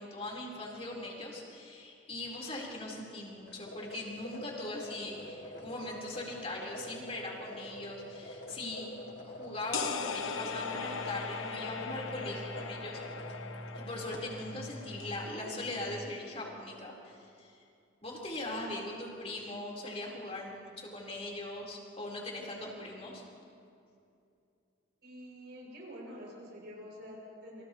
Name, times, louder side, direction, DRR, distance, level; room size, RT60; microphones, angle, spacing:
voice 1, 0.0-8.9 9.2-13.0 13.7-17.6 18.0-23.2, left 2 dB, 30° left, -3 dB, 4.4 m, -40 dB
sound 1, 3.5-14.2, left 1 dB, 65° left, 1.8 m, -47 dB
sound 2, 5.1-16.1, equal, 20° right, 3.4 m, -49 dB
sound 3, 9.7-15.3, left 5 dB, 90° left, 1.2 m, -39 dB
voice 2, 25.0-27.6, equal, 55° right, -3 dB, 7.2 m, -47 dB
29.0 x 28.5 x 3.2 m, 2.5 s
head